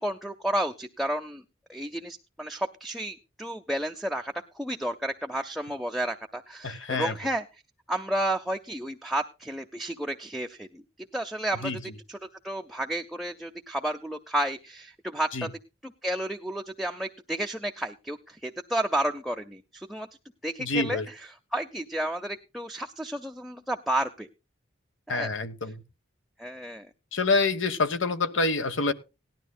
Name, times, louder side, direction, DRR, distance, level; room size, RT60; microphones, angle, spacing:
voice 1, 0.0-1.4 1.7-7.4 7.9-10.8 11.1-11.7 12.1-15.5 15.8-20.1 20.4-21.1 21.5-24.3 25.1-25.3 26.4-26.9, right 1 dB, ahead, 3 dB, 0.5 m, -31 dB
voice 2, 6.6-7.1 11.6-11.8 15.3-15.5 20.6-21.1 25.1-25.8 27.1-28.9, left 3 dB, 80° left, 11 dB, 1.2 m, -26 dB
18.0 x 12.0 x 2.2 m, 0.28 s
head